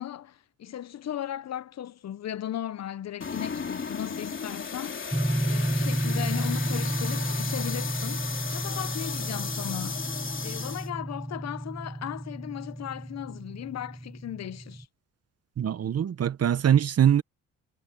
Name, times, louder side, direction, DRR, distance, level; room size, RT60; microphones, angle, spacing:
voice 1, 0.0-5.1 5.4-10.0 10.4-14.9, left 11 dB, 50° left, 0.7 m, -37 dB
sound 1, 3.2-10.9, left 5 dB, 35° left, 3.2 m, -35 dB
sound 2, 5.1-14.8, right 1 dB, 5° right, 1.0 m, -32 dB
voice 2, 15.6-17.2, right 9 dB, 50° right, 1.1 m, -22 dB
cardioid pair, 80°, 33 cm